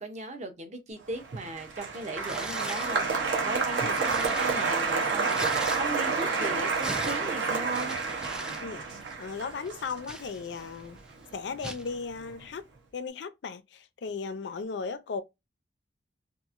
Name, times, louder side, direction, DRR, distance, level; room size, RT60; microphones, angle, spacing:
voice 1, 0.0-8.0, right 2 dB, 40° right, 0.6 m, -37 dB
Applause, 1.2-11.6 11.8-12.5, right 4 dB, 80° right, 0.7 m, -30 dB
Tearing, 2.3-3.0 3.5-6.2 6.5-8.6 8.9-9.1 9.6-10.8 11.6-11.9, right 1 dB, 5° right, 0.3 m, -40 dB
voice 2, 9.2-11.0 11.3-12.6 12.9-15.2, left 5 dB, 70° left, 0.4 m, -36 dB
2.8 x 2.4 x 2.4 m
head